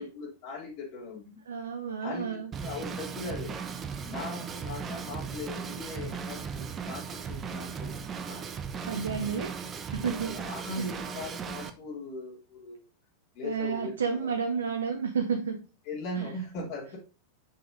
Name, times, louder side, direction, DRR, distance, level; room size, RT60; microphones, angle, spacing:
voice 1, 0.0-1.4 2.0-3.6 4.0-8.5 9.0-9.4 9.9-12.8 13.3-14.3 15.8-17.0, left 2 dB, 45° left, -2 dB, 3.1 m, -39 dB
voice 2, 1.5-2.5 8.9-9.5 9.9-10.5 10.8-10.9 13.4-15.6 16.1-16.3, right 6 dB, 70° right, 5 dB, 0.9 m, -31 dB
Drum kit / Drum, 2.5-11.7, right 6 dB, 25° right, 0.9 m, -37 dB
6.8 x 5.9 x 3.9 m, 0.31 s
figure-of-eight pair, 90°, 0 cm